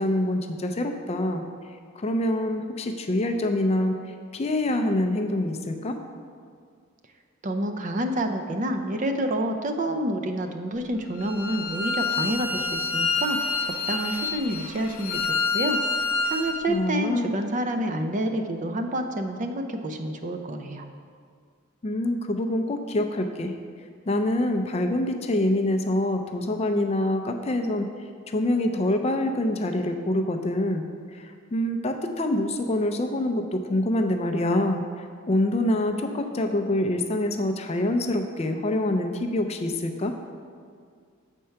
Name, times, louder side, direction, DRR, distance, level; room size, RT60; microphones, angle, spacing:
voice 1, 0.0-1.4 2.0-4.0 4.3-6.0 16.7-17.4 21.8-23.5 24.1-27.9 28.3-34.9 35.3-40.1, left 1 dB, 30° left, 5 dB, 0.4 m, -25 dB
voice 2, 7.4-15.2 15.5-20.8, right 1 dB, 35° right, 6 dB, 0.4 m, -28 dB
Bowed string instrument, 11.2-16.6, left 3 dB, 85° left, 0.9 m, -27 dB
7.5 x 4.5 x 5.6 m, 2.1 s
head